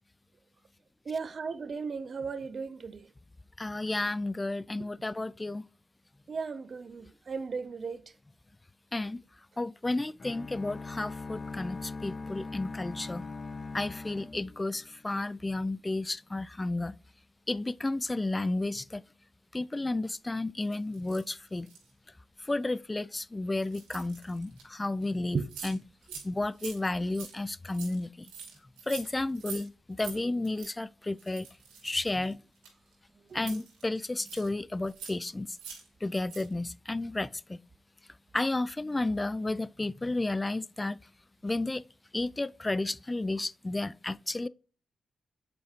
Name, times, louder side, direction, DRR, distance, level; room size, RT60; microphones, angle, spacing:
voice 1, 1.1-3.1 6.3-8.0 25.3-25.5 30.1-30.2 33.3-33.6, right 5 dB, 55° right, 0.6 m, -36 dB
voice 2, 3.6-5.6 8.9-9.2 9.6-13.3 13.7-16.9 17.5-19.0 19.5-21.7 22.5-25.8 26.2-28.3 28.9-31.5 31.8-32.4 33.3-35.6 36.0-37.6 38.3-41.0 41.4-41.8 42.1-44.5, left 2 dB, 25° left, 0.4 m, -32 dB
sound 1, 10.2-15.2, left 3 dB, 40° left, 0.8 m, -41 dB
sound 2, 20.6-21.9 22.4-22.6 23.6-24.6 25.0-25.1 25.3-25.8 26.0-26.3 26.5-29.6 29.9-30.2 30.4-30.7 31.2-32.9 33.4-34.5 34.8-35.2 35.5-35.9 36.2-36.5, right 7 dB, 85° right, 2.2 m, -45 dB
7.8 x 4.7 x 2.9 m
supercardioid pair, 40°, 0 cm